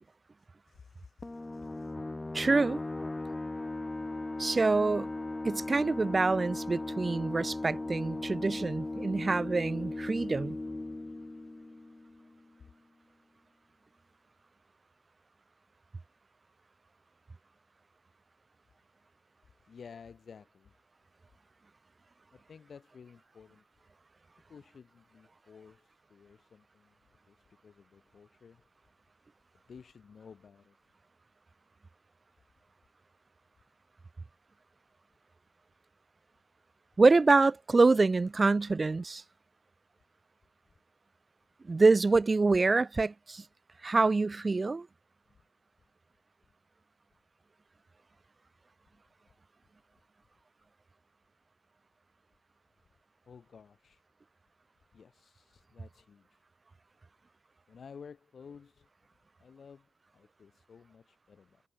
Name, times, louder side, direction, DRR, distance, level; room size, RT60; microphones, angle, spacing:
voice 1, 0.7-1.9 19.7-20.7 22.3-23.6 24.5-26.9 27.3-28.6 29.7-30.8 53.3-54.0 54.9-56.4 57.7-58.9 59.4-61.6, left 6 dB, 60° left, 4.8 m, -53 dB
sound 1, 1.2-12.5, left 2 dB, 25° left, 3.2 m, -38 dB
voice 2, 2.3-2.8 4.4-5.1 5.4-10.6 37.0-39.2 41.7-43.4 43.8-44.9, right 3 dB, 35° right, 0.5 m, -26 dB
cardioid pair, 60°, 0 cm